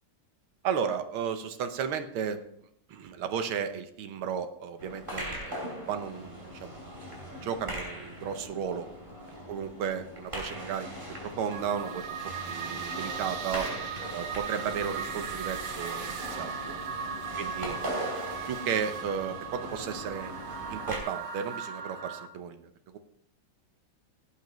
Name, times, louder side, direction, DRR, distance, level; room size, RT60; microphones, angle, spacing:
voice 1, 0.6-2.4 2.9-6.9 7.4-8.9 9.5-10.9 11.2-12.2 12.4-13.7 14.1-16.8 17.4-17.8 18.5-20.3 20.7-22.6, right 7 dB, 90° right, 9 dB, 1.8 m, -34 dB
sound 1, 4.8-21.0, equal, 25° right, 3.2 m, -40 dB
sound 2, 11.5-22.3, right 7 dB, 55° right, 1.0 m, -38 dB
16.5 x 8.5 x 3.1 m, 0.72 s
omnidirectional pair, 2.2 m